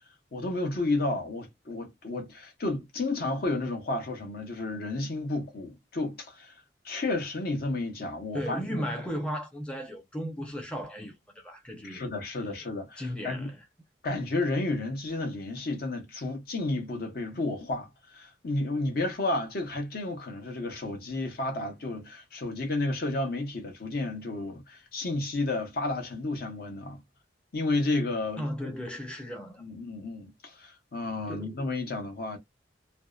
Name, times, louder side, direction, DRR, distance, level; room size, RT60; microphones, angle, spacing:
voice 1, 0.3-6.5 6.8-8.8 11.8-13.5 14.0-27.0 27.5-28.7 29.6-32.4, left 2 dB, 60° left, 0.8 m, -32 dB
voice 2, 8.3-12.1 13.0-13.6 28.4-29.6 31.3-31.6, equal, 5° left, 0.5 m, -35 dB
2.6 x 2.1 x 2.3 m
head